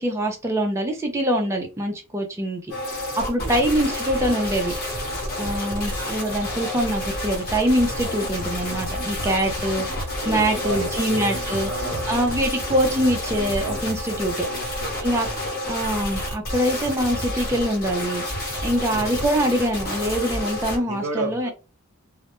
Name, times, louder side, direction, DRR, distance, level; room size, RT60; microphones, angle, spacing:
voice 1, 0.0-2.6 3.2-4.8 5.4-11.7 12.1-14.5 15.0-15.3 15.6-18.2 18.6-21.5, equal, 15° right, 0.3 m, -24 dB
sound 1, 2.7-20.8, left 1 dB, 45° left, 1.1 m, -29 dB
sound 2, 8.0-14.2, left 1 dB, 80° left, 0.6 m, -38 dB
voice 2, 10.2-12.5 14.4-15.5 18.8-19.1 20.8-21.5, right 2 dB, 75° right, 0.5 m, -33 dB
2.1 x 2.0 x 2.9 m
head